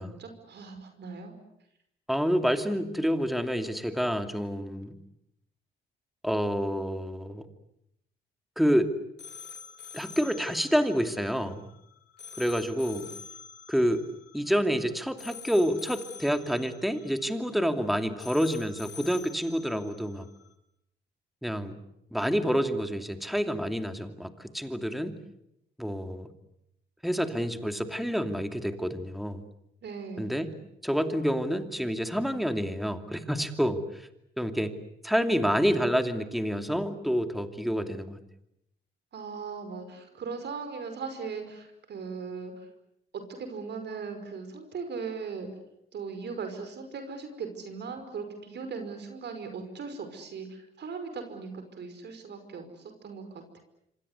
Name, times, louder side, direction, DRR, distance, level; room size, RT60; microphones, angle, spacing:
voice 1, 0.0-1.4 29.8-30.3 39.1-42.5 43.1-45.5 45.9-53.6, right 5 dB, 60° right, 7 dB, 5.4 m, -39 dB
voice 2, 2.1-4.9 6.2-7.5 8.6-8.9 9.9-11.6 12.4-13.1 13.7-14.0 14.3-20.3 21.4-21.8 22.1-25.2 25.8-26.3 27.0-29.4 30.2-30.5 30.8-34.1 34.4-34.7 35.0-38.2, equal, ahead, 7 dB, 2.7 m, -28 dB
sound 1, 9.2-20.5, left 6 dB, 60° left, 4.5 m, -47 dB
26.5 x 26.0 x 8.2 m, 0.80 s
cardioid pair, 90°, 20 cm